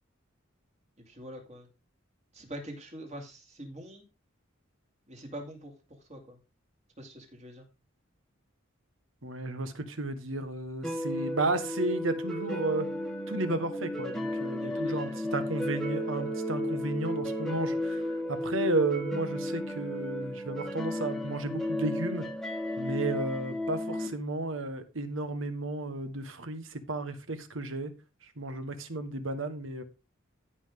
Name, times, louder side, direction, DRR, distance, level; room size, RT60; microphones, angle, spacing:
voice 1, 1.1-1.7 2.3-4.0 5.1-6.4 7.0-7.7 14.6-15.2, equal, 35° right, 2.6 m, -44 dB
voice 2, 9.2-12.9 13.3-18.0 18.3-22.2 22.8-27.9 28.4-29.8, right 2 dB, 70° right, 1.4 m, -33 dB
sound 1, 10.8-24.1, left 1 dB, ahead, 1.4 m, -33 dB
15.5 x 5.6 x 3.7 m
head